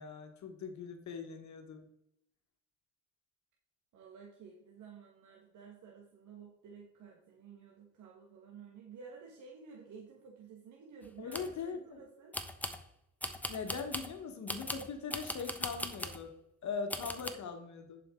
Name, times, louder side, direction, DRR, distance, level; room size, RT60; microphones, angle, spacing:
voice 1, 0.0-1.9 11.2-12.0 13.5-16.3 16.6-18.0, left 5 dB, 65° left, 6 dB, 1.5 m, -41 dB
voice 2, 3.9-12.3, right 6 dB, 75° right, -1 dB, 1.6 m, -53 dB
sound 1, 11.0-11.6 12.3-12.8 13.2-14.1 14.5-16.2 16.9-17.3, left 1 dB, 5° left, 1.0 m, -39 dB
10.5 x 5.8 x 3.8 m, 0.80 s
cardioid pair, 90°, 30 cm